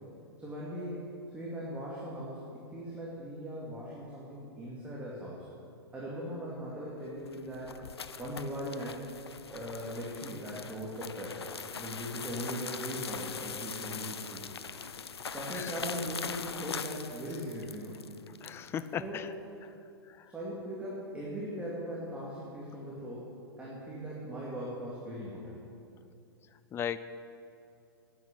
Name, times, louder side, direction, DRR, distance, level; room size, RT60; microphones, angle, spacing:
voice 1, 0.4-5.4 5.9-7.8 8.2-9.0 9.5-11.4 11.7-14.5 15.3-18.1 19.0-19.2 20.3-25.6, equal, 10° right, -6 dB, 2.4 m, -39 dB
sound 1, 7.1-18.9, left 6 dB, 80° left, 0.5 m, -41 dB
voice 2, 15.5-15.8 18.4-19.3 19.6-19.7 20.0-20.3 26.7-27.0, left 8 dB, 20° left, 13 dB, 0.4 m, -37 dB
9.5 x 9.5 x 8.4 m, 2.6 s
figure-of-eight pair, 105°, 13 cm